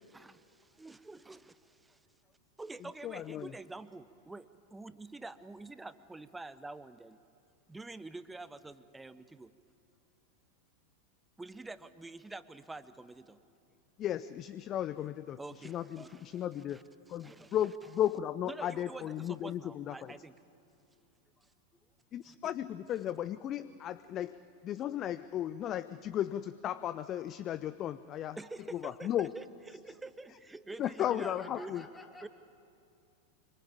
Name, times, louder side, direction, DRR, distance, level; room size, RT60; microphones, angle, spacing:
voice 1, 0.1-2.0 2.6-7.2 7.7-9.5 11.4-13.4 15.4-16.4 16.7-16.8 17.2-17.5 18.5-20.3 22.3-22.4 28.4-31.8 32.2-32.3, right 2 dB, 10° right, 14 dB, 0.8 m, -47 dB
voice 2, 2.8-3.5 14.0-16.8 17.1-20.1 22.1-24.4 24.6-28.4 28.7-29.3 30.8-31.9, left 11 dB, 30° left, 15 dB, 0.5 m, -35 dB
voice 3, 13.4-13.8 20.9-21.1 21.4-21.9 30.8-32.3, left 2 dB, 10° left, 6 dB, 2.1 m, -53 dB
26.0 x 24.5 x 7.3 m, 2.5 s
figure-of-eight pair, 90°, 0 cm